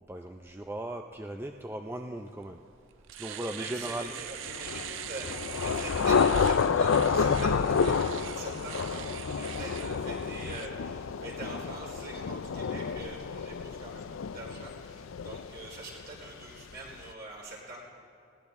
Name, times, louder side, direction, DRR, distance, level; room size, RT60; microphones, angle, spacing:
voice 1, 0.0-2.6 3.2-4.1, right 1 dB, 10° right, 4 dB, 0.4 m, -37 dB
Domestic sounds home sounds, 2.4-2.5 2.9-10.7, right 12 dB, 70° right, 0.4 m, -43 dB
voice 2, 3.1-17.8, right 2 dB, 50° right, -3 dB, 4.3 m, -44 dB
Thunder / Rain, 4.5-16.1, left 5 dB, 90° left, 0.5 m, -29 dB
20.0 x 17.0 x 3.6 m, 2.6 s
head